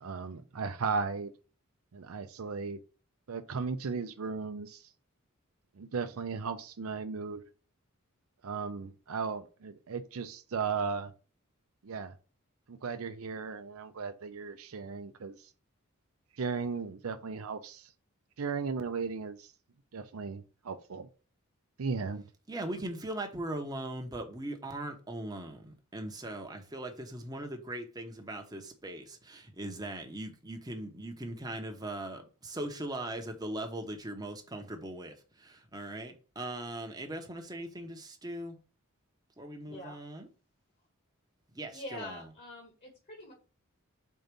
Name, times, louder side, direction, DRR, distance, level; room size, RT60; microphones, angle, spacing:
voice 1, 0.0-1.3 1.9-2.8 3.3-4.9 5.8-7.4 8.4-11.1 11.8-12.1 12.7-15.4 16.4-17.9 18.4-19.5 19.9-21.1 21.8-22.2, right 5 dB, 75° right, 0.6 m, -36 dB
voice 2, 22.5-38.6 39.4-40.3 41.5-42.2, right 1 dB, 20° right, 0.9 m, -40 dB
voice 3, 39.6-40.0 41.7-43.3, left 1 dB, 45° left, 1.6 m, -45 dB
4.6 x 3.9 x 5.2 m
head